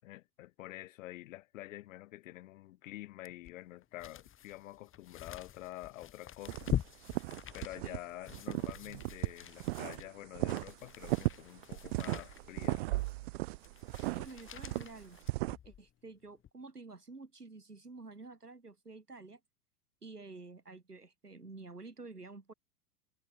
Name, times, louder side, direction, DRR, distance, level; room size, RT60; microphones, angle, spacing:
voice 1, 0.0-6.7 7.5-13.1, left 16 dB, 55° left, 7.1 m, -48 dB
sound 1, 3.2-15.9 16.4-16.5, left 10 dB, 25° left, 7.7 m, -44 dB
sound 2, 6.5-8.0 8.3-10.1 10.3-15.6, right 21 dB, 45° right, 0.6 m, -36 dB
voice 2, 14.1-15.2 15.6-19.4 20.0-22.5, right 3 dB, 85° right, 7.3 m, -50 dB
figure-of-eight pair, 95°, 45 cm